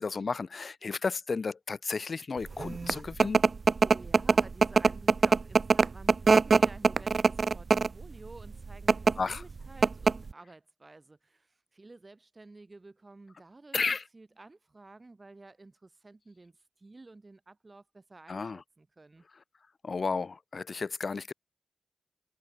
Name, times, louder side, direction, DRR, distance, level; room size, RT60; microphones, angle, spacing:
voice 1, 0.0-3.4 9.2-9.4 13.7-14.0 18.3-18.6 19.8-21.3, left 4 dB, 60° left, 0.7 m, -33 dB
sound 1, 2.6-8.0 8.7-9.1 9.5-9.6 9.8-10.3, right 4 dB, 60° right, 0.4 m, -22 dB
voice 2, 3.8-13.8 14.1-19.2, right 2 dB, 40° right, 6.6 m, -52 dB
cardioid pair, 50°, 0 cm